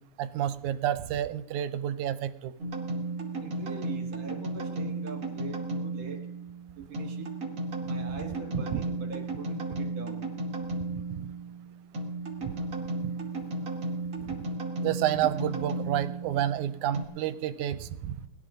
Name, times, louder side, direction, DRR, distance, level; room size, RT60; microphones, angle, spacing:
voice 1, 0.2-2.5 8.7-8.8 11.2-11.3 14.2-14.3 14.8-18.2, right 11 dB, 85° right, 13 dB, 2.1 m, -29 dB
sound 1, 2.6-17.0, right 2 dB, 30° right, 2.6 m, -34 dB
voice 2, 3.4-6.3 6.8-7.3 7.9-10.3, right 4 dB, 60° right, 3 dB, 3.0 m, -42 dB
20.5 x 12.5 x 4.0 m, 0.88 s
omnidirectional pair, 3.4 m